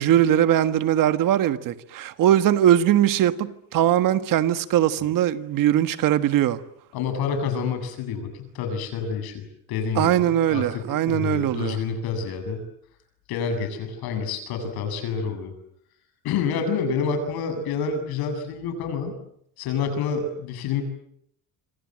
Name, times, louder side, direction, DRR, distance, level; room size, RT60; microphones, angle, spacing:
voice 1, 0.0-6.6 9.9-11.8, right 11 dB, 60° right, 1.6 m, -21 dB
voice 2, 6.9-12.6 13.3-15.5 16.2-19.1 19.6-20.8, left 5 dB, 90° left, 7.9 m, -28 dB
27.0 x 27.0 x 7.5 m
cardioid pair, 170°, 36 cm